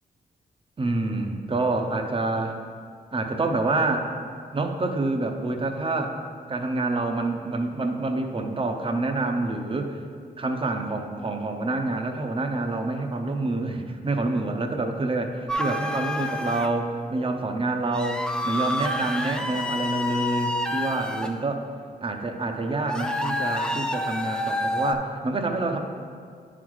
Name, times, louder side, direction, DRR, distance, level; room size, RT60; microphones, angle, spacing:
voice 1, 0.8-2.5 3.1-4.1 4.5-6.2 6.5-10.0 10.4-21.7 22.0-25.8, right 2 dB, 30° right, 4 dB, 0.7 m, -27 dB
sound 1, 15.5-16.7 17.9-21.3 22.9-24.9, left 1 dB, 5° left, 0.4 m, -28 dB
9.6 x 3.9 x 4.7 m, 2.1 s
wide cardioid pair, 110°, 17 cm